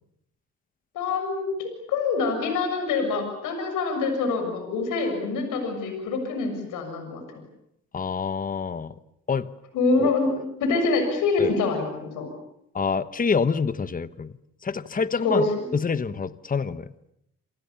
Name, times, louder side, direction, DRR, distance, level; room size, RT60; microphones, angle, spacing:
voice 1, 1.0-7.2 9.7-10.3 10.6-12.3 15.2-15.7, left 3 dB, 90° left, 5 dB, 6.8 m, -25 dB
voice 2, 7.9-8.9 9.3-9.5 10.0-10.1 11.4-11.5 12.7-14.3 14.6-16.9, left 5 dB, 30° left, 13 dB, 1.2 m, -26 dB
28.0 x 27.0 x 7.1 m, 0.77 s
cardioid pair, 90°, 30 cm